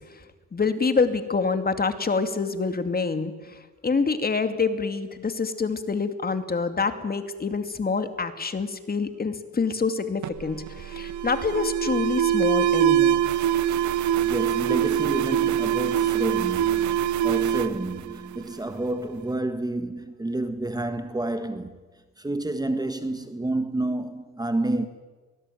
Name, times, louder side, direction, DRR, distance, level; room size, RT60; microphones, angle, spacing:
voice 1, 0.5-13.3, left 4 dB, 30° left, 2.5 m, -26 dB
Alarm, 10.2-18.8, right 11 dB, 70° right, 1.0 m, -24 dB
voice 2, 14.2-21.7 22.2-24.9, right 2 dB, 15° right, 1.6 m, -29 dB
23.5 x 19.5 x 9.3 m
cardioid pair, 90°, 30 cm